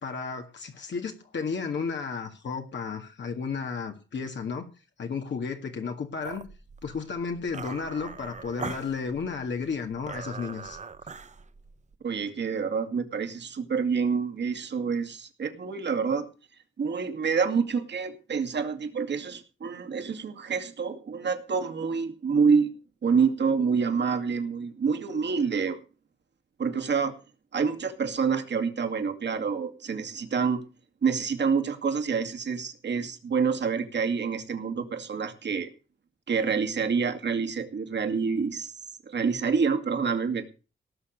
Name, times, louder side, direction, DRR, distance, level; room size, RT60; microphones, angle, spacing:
voice 1, 0.0-4.7 5.0-6.4 6.8-10.8, left 5 dB, 65° left, 4 dB, 1.9 m, -33 dB
sound 1, 6.2-12.0, right 5 dB, 35° right, 0.9 m, -42 dB
voice 2, 12.0-16.3 16.8-22.7 23.0-25.8 26.6-27.1 27.5-30.6 31.0-35.7 36.3-38.8 39.1-40.5, right 5 dB, 65° right, 5 dB, 2.4 m, -27 dB
18.0 x 6.8 x 6.7 m, 0.35 s
wide cardioid pair, 115°, 20 cm